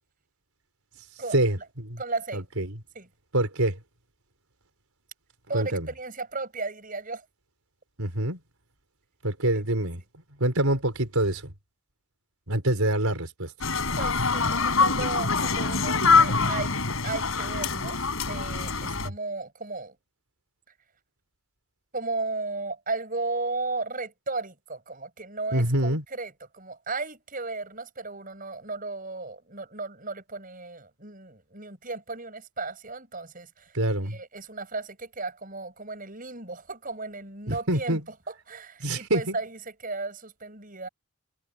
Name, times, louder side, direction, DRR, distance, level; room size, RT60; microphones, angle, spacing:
voice 1, 1.3-2.0 2.3-2.8 3.3-3.8 5.5-5.9 8.0-8.4 9.2-10.0 10.4-11.5 12.5-13.5 25.5-26.0 33.7-34.2 37.5-38.0 38.8-39.4, right 1 dB, 75° right, 4.5 m, -25 dB
voice 2, 2.0-2.5 3.0-3.1 5.5-7.2 9.5-9.6 10.0-10.1 14.0-20.0 21.9-33.7 34.0-38.0 38.3-40.9, right 3 dB, 40° right, 7.1 m, -35 dB
sound 1, 13.6-19.1, left 4 dB, 70° left, 4.8 m, -24 dB
head